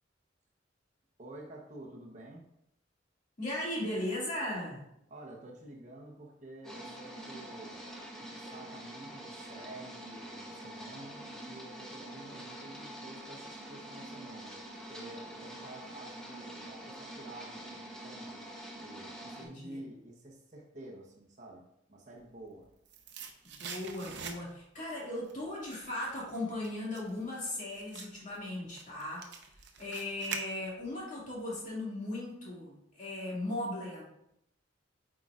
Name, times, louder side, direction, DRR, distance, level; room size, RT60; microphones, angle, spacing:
voice 1, 1.2-2.5 5.1-7.8 8.2-14.6 14.9-18.3 18.7-22.7, right 1 dB, 40° right, -1 dB, 1.0 m, -50 dB
voice 2, 3.4-4.8 19.4-19.8 23.4-29.3 29.8-34.0, left 1 dB, 40° left, -5 dB, 2.3 m, -37 dB
sound 1, 6.6-19.5, right 1 dB, 5° left, 1.0 m, -46 dB
sound 2, 22.4-24.8 25.1-31.0 31.3-31.4, right 6 dB, 65° right, 0.7 m, -45 dB
8.2 x 4.9 x 2.5 m, 0.78 s
head